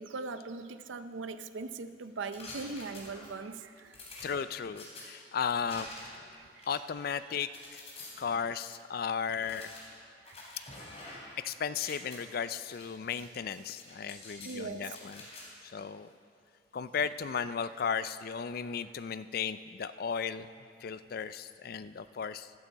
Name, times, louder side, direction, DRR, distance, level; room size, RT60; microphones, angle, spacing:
voice 1, 0.0-4.0 6.4-6.7 10.3-10.4 14.4-15.0, right 4 dB, 90° right, 11 dB, 0.6 m, -40 dB
sound 1, 2.3-3.4 3.9-5.0 5.7-6.2 6.6-8.1 8.6-8.7 9.4-11.4 11.7-12.2 12.7-13.2 13.5-14.6 14.9-15.4, left 2 dB, 35° left, 3.1 m, -48 dB
voice 2, 4.2-5.9 6.7-7.8 8.2-9.7 11.4-15.3 15.7-16.1 16.7-20.5 20.8-22.6, left 6 dB, 50° left, 14 dB, 0.4 m, -35 dB
14.0 x 13.5 x 4.1 m, 2.3 s
head